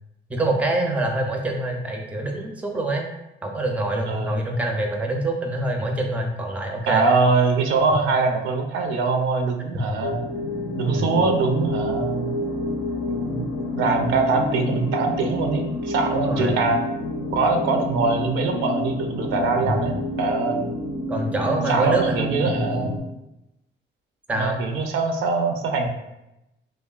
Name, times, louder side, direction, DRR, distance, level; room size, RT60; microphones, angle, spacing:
voice 1, 0.3-3.1 3.4-7.1 10.9-11.2 16.1-16.6 19.6-19.8 21.1-22.1 22.4-22.7 24.3-24.6, right 1 dB, 5° right, 2 dB, 0.4 m, -25 dB
voice 2, 4.1-4.4 6.9-10.2 10.8-12.3 13.1-13.5 13.7-16.8 17.3-20.7 21.7-23.0 24.3-25.9, right 4 dB, 80° right, 3 dB, 0.4 m, -23 dB
sound 1, 10.0-23.0, left 1 dB, 80° left, 0.5 m, -29 dB
3.1 x 2.1 x 2.3 m, 0.90 s
cardioid pair, 90°, 20 cm